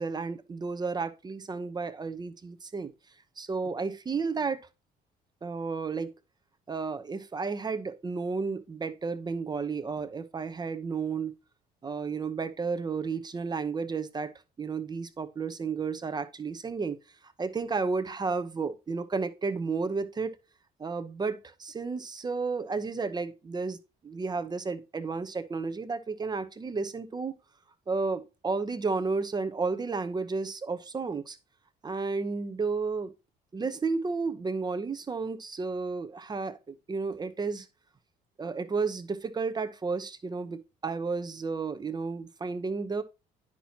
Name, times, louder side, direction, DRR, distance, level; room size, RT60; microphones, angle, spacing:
voice 1, 0.0-2.9 3.4-4.6 5.4-6.1 6.7-11.3 11.8-14.3 14.6-20.4 20.8-23.8 24.0-27.3 27.9-31.4 31.8-33.1 33.5-37.7 38.4-43.0, right 4 dB, 25° right, 0.8 m, -32 dB
9.9 x 5.9 x 2.8 m
cardioid pair, 110°, 17 cm